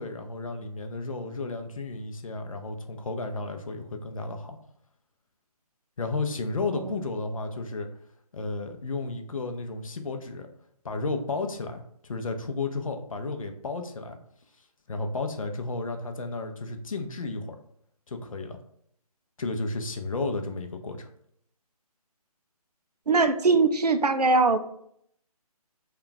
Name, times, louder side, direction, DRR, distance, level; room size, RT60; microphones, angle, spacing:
voice 1, 0.0-4.6 6.0-7.9 8.3-10.5 10.8-14.2 14.9-17.6 18.1-18.6 19.4-21.1, left 3 dB, 60° left, 6 dB, 0.5 m, -33 dB
voice 2, 23.1-24.6, right 3 dB, 90° right, 9 dB, 0.4 m, -21 dB
3.2 x 2.3 x 3.7 m, 0.70 s
figure-of-eight pair, 145°, 20 cm